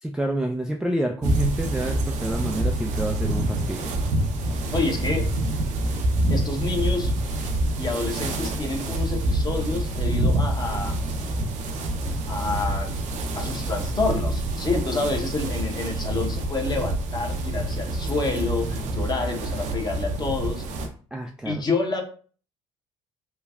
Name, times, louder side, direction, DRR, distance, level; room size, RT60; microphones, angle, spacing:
voice 1, 0.0-3.9 21.1-21.6, right 1 dB, 5° right, 1 dB, 0.3 m, -28 dB
WInd Trees and Tags, 1.2-20.9, right 1 dB, 55° right, 0.6 m, -26 dB
voice 2, 4.7-5.3 6.3-7.1 7.8-11.0 12.3-12.9 13.4-20.6 21.4-22.0, left 3 dB, 30° left, 2 dB, 0.9 m, -28 dB
3.3 x 2.2 x 2.3 m, 0.41 s
hypercardioid pair, 60°, 14 cm